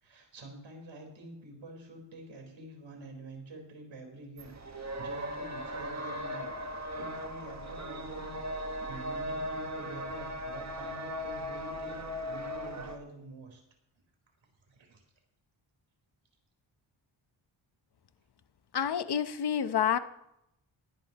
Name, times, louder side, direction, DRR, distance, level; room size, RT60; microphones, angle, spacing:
voice 1, 0.0-8.4 8.8-13.6 14.7-15.0, right 2 dB, 75° right, 2 dB, 4.4 m, -47 dB
sound 1, 4.4-13.0, equal, 35° right, 1.5 m, -38 dB
voice 2, 18.7-20.0, left 8 dB, 55° left, 11 dB, 0.9 m, -28 dB
20.0 x 11.5 x 3.0 m, 0.81 s
wide cardioid pair, 90°, 47 cm